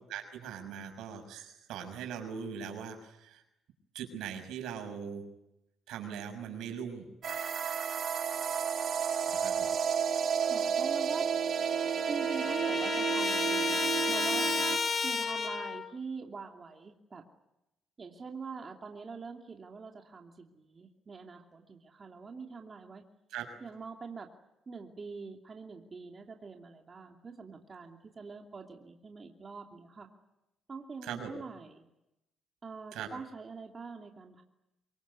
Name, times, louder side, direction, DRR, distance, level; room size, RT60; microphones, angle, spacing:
voice 1, 0.0-3.4 3.9-5.2 5.9-7.1 9.3-9.7 23.3-23.5 31.0-31.3 32.9-33.1, right 8 dB, 90° right, 5 dB, 6.2 m, -40 dB
sound 1, 7.2-14.8, right 7 dB, 60° right, 2.5 m, -31 dB
voice 2, 10.4-11.3 12.1-14.5 15.0-17.2 18.0-23.0 23.6-24.3 24.7-30.1 30.7-31.9 32.6-34.4, right 4 dB, 35° right, 2 dB, 2.8 m, -44 dB
Trumpet, 11.1-11.2 11.5-15.9, left 5 dB, 40° left, 1.9 m, -32 dB
24.0 x 23.0 x 9.6 m, 0.90 s
cardioid pair, 90°, 0 cm